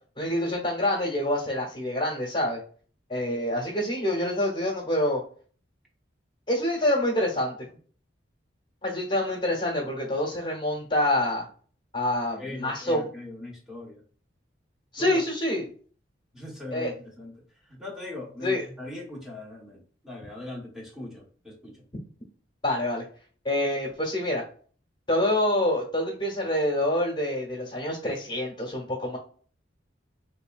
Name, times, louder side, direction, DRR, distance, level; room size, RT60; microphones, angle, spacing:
voice 1, 0.2-2.6 3.1-5.2 6.5-7.6 8.8-11.4 11.9-13.1 14.9-15.7 16.7-16.9 18.4-18.6 22.6-23.0 23.4-24.4 25.1-29.2, left 1 dB, 25° left, -3 dB, 1.0 m, -26 dB
voice 2, 12.4-14.0 15.0-15.2 16.3-17.4 17.6-21.8, left 2 dB, ahead, -2 dB, 1.0 m, -40 dB
4.0 x 3.2 x 2.3 m, 0.43 s
head